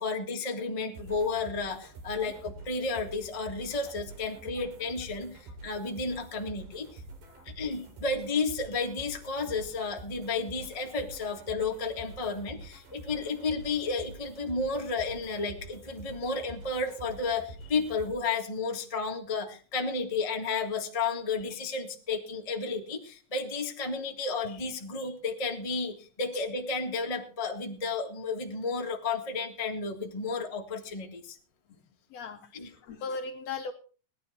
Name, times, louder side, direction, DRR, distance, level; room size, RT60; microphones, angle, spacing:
voice 1, 0.0-7.0 7.4-31.4 32.5-33.0, left 4 dB, 40° left, 2 dB, 0.5 m, -32 dB
sound 1, 0.9-18.1, right 2 dB, 70° right, 4.2 m, -47 dB
voice 2, 32.1-33.7, left 4 dB, 70° left, 6 dB, 1.6 m, -38 dB
17.0 x 11.0 x 4.3 m, 0.38 s
omnidirectional pair, 3.9 m